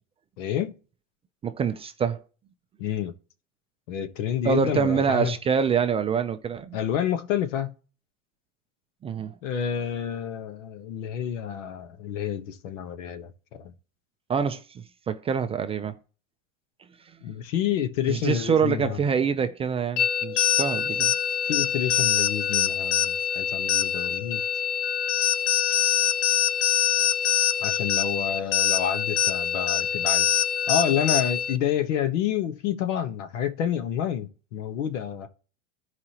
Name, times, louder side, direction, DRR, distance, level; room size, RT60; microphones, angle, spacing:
voice 1, 0.4-0.7 2.8-3.1 3.9-5.3 6.7-7.7 9.4-13.3 13.6-13.7 17.2-19.0 21.5-24.4 27.6-35.3, left 9 dB, 90° left, 1.2 m, -29 dB
voice 2, 1.4-2.2 4.4-6.8 9.0-9.3 14.3-15.9 18.1-21.1, right 6 dB, 15° right, 0.3 m, -25 dB
sound 1, 20.0-31.6, left 9 dB, 60° left, 1.0 m, -24 dB
13.5 x 4.9 x 2.9 m
supercardioid pair, 135°, 37 cm